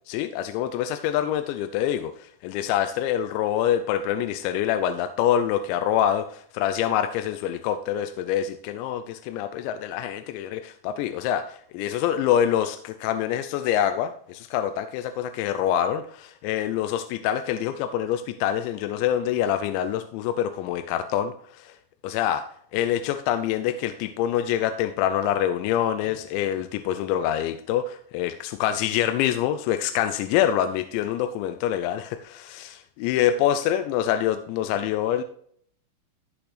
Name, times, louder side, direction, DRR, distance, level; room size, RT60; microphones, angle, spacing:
voice 1, 0.1-2.1 2.4-21.7 22.0-22.4 22.7-35.2, left 10 dB, 85° left, 10 dB, 2.9 m, -25 dB
14.0 x 6.2 x 3.3 m, 0.62 s
omnidirectional pair, 5.1 m